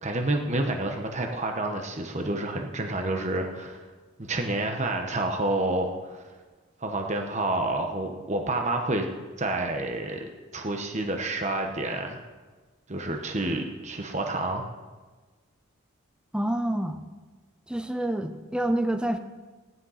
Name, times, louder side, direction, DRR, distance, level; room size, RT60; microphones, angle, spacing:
voice 1, 0.0-3.8 4.2-6.2 6.8-9.1 9.4-10.2 10.5-12.2 12.9-14.6, right 2 dB, 35° right, 3 dB, 1.1 m, -29 dB
voice 2, 16.3-17.0 17.7-19.2, right 1 dB, 5° right, 6 dB, 0.7 m, -27 dB
15.0 x 11.0 x 5.7 m, 1.3 s
head